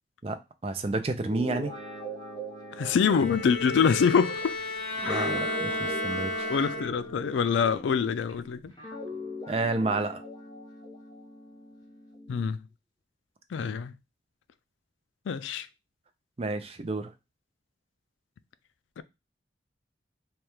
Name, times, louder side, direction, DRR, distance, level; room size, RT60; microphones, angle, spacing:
voice 1, 0.2-1.7 5.1-6.5 9.5-10.2 16.4-17.1, right 3 dB, 30° right, 0.4 m, -30 dB
Guitar, 1.1-8.3 8.8-12.5, equal, 20° left, 0.9 m, -41 dB
voice 2, 2.7-4.6 5.0-5.6 6.5-8.7 12.3-12.6 13.5-13.9 15.3-15.7 19.0-19.1, left 6 dB, 85° left, 0.3 m, -25 dB
Bowed string instrument, 3.1-7.2, left 1 dB, 60° left, 1.5 m, -32 dB
3.2 x 2.3 x 4.3 m
head